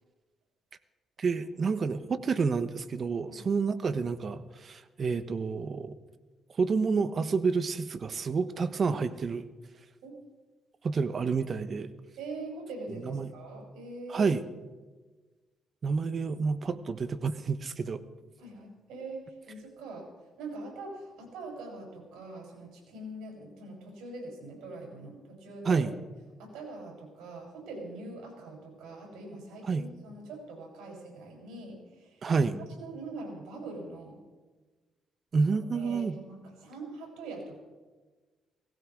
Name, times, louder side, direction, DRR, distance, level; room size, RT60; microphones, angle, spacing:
voice 1, 1.2-5.9 6.6-9.4 10.8-11.9 13.1-13.3 14.1-14.4 15.8-18.0 25.6-25.9 29.7-29.8 32.2-32.5 35.3-36.2, right 5 dB, 45° right, 12 dB, 1.1 m, -29 dB
voice 2, 12.2-14.4 18.4-25.9 26.4-32.3 32.8-34.2 35.5-37.6, right 2 dB, 85° right, 0 dB, 6.7 m, -43 dB
18.0 x 16.5 x 4.8 m, 1.3 s
cardioid pair, 90°, 0 cm